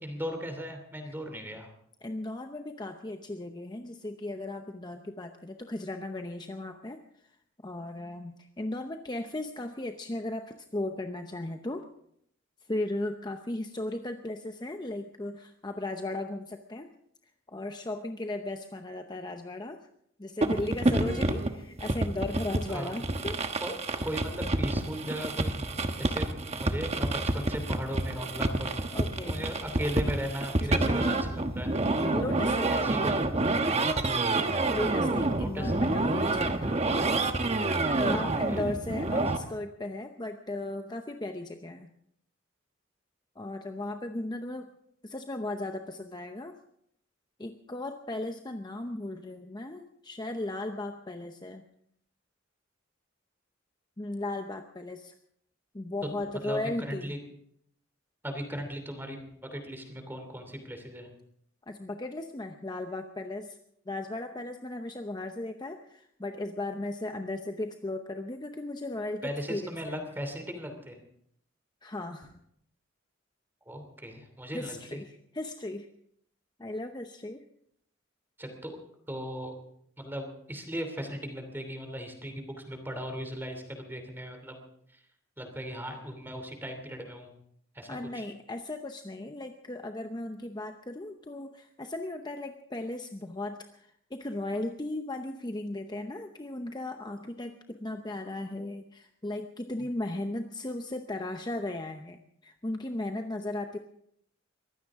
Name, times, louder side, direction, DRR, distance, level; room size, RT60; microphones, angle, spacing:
voice 1, 0.0-1.7 22.7-23.0 23.6-23.7 24.0-25.7 26.0-28.7 29.2-31.7 32.7-33.3 35.4-35.7 38.1-38.2 38.5-38.6 56.4-57.2 58.2-61.1 69.2-71.0 73.7-75.0 78.4-78.8 79.1-79.5 80.0-84.6 85.4-87.4 87.7-88.2 99.8-99.9, equal, 10° right, 5 dB, 2.8 m, -37 dB
voice 2, 2.0-7.0 7.6-11.8 12.7-16.9 17.5-19.8 20.2-23.4 28.9-29.5 30.6-31.1 31.8-32.9 34.7-36.9 37.9-41.9 43.4-44.7 45.0-46.5 47.4-51.6 54.0-55.1 55.7-57.2 61.7-63.6 63.9-70.0 71.8-72.3 74.5-75.9 76.6-77.4 87.9-103.8, left 2 dB, 20° left, 5 dB, 0.7 m, -36 dB
sound 1, 20.4-39.4, right 2 dB, 35° right, 1.1 m, -28 dB
23.0 x 16.0 x 3.7 m, 0.70 s
head